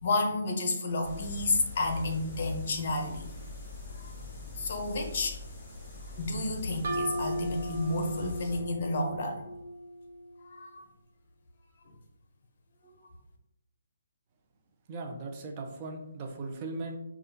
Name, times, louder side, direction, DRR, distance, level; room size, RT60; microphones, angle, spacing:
voice 1, 0.0-3.3 4.0-4.1 4.6-5.4 6.2-9.7 10.5-10.9, left 2 dB, 45° left, 4 dB, 0.9 m, -31 dB
sound 1, 1.0-8.6, left 3 dB, 25° left, 1.3 m, -42 dB
sound 2, 6.8-10.4, right 1 dB, 65° right, 1.1 m, -37 dB
voice 2, 14.9-17.0, right 3 dB, 30° right, 2 dB, 0.6 m, -38 dB
5.0 x 2.4 x 2.9 m, 0.83 s
hypercardioid pair, 155°, 0 cm